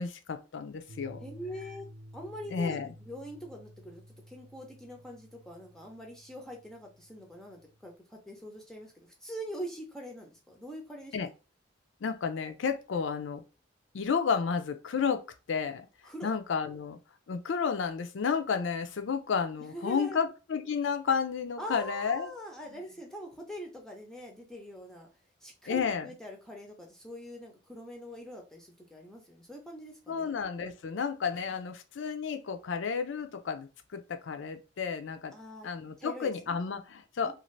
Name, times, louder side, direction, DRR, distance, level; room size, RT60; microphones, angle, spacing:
voice 1, 0.0-1.2 2.5-2.9 11.1-11.3 12.0-13.4 13.9-15.9 16.2-17.0 17.3-22.3 25.7-26.1 30.1-35.3 35.6-37.3, left 6 dB, 60° left, 0.4 m, -32 dB
sound 1, 0.9-7.9, equal, 60° right, 0.6 m, -52 dB
voice 2, 1.2-1.9 2.1-4.0 4.3-11.2 16.0-16.3 19.7-20.2 21.6-25.1 25.4-30.3 35.3-35.7 36.0-36.6 37.2-37.3, equal, 5° left, 0.5 m, -43 dB
2.6 x 2.4 x 3.1 m
head